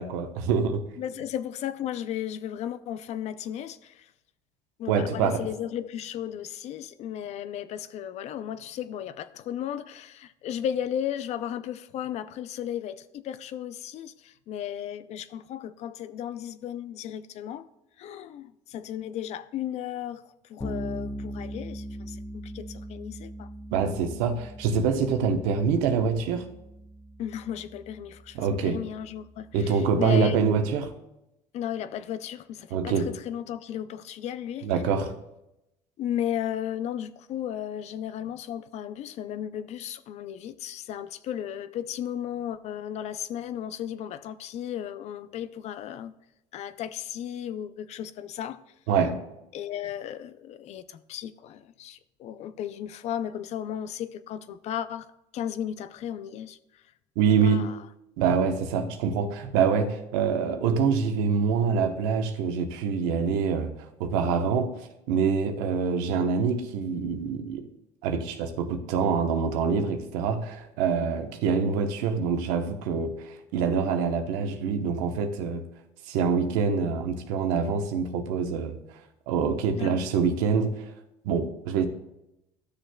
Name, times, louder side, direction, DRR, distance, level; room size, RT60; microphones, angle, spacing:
voice 1, 0.0-0.8 4.9-5.5 23.7-26.4 28.3-28.8 29.5-30.9 32.7-33.1 34.6-35.1 48.9-49.2 57.2-57.7 58.2-63.7 64.0-67.7 68.0-75.6 76.1-78.8 79.3-80.9 81.2-81.9, right 6 dB, 85° right, 0.9 m, -25 dB
voice 2, 1.0-4.1 4.8-17.7 18.0-23.5 27.2-30.4 31.5-34.7 36.0-46.1 46.5-48.6 49.5-56.8 57.4-57.8 78.5-78.6 79.8-80.1, left 10 dB, 55° left, 0.5 m, -35 dB
Bass guitar, 20.6-30.2, equal, 20° left, 1.1 m, -41 dB
13.0 x 6.5 x 2.2 m
supercardioid pair, 100°, 13 cm